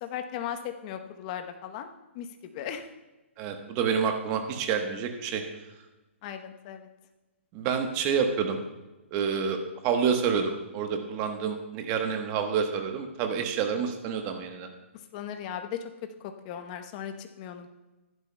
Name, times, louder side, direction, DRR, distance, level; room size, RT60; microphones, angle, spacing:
voice 1, 0.0-1.9 2.1-2.9 6.2-6.9 15.1-15.8 16.2-17.7, left 9 dB, 35° left, 6 dB, 0.9 m, -37 dB
voice 2, 3.4-5.4 7.5-8.6 9.1-9.6 9.8-14.7, right 6 dB, 30° right, 5 dB, 1.1 m, -28 dB
15.5 x 11.0 x 2.2 m, 1.1 s
hypercardioid pair, 145°, 7 cm